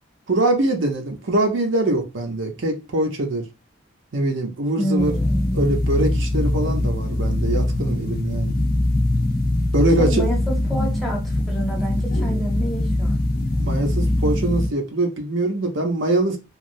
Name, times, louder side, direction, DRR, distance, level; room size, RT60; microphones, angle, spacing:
voice 1, 0.3-3.5 4.1-5.1 5.5-8.5 9.7-10.3 13.6-16.4, right 2 dB, 65° right, 0.7 m, -23 dB
voice 2, 4.8-5.5 10.0-13.2, right 1 dB, ahead, 0.9 m, -28 dB
sound 1, 5.0-14.7, left 1 dB, 45° left, 0.5 m, -22 dB
3.0 x 2.4 x 2.6 m
head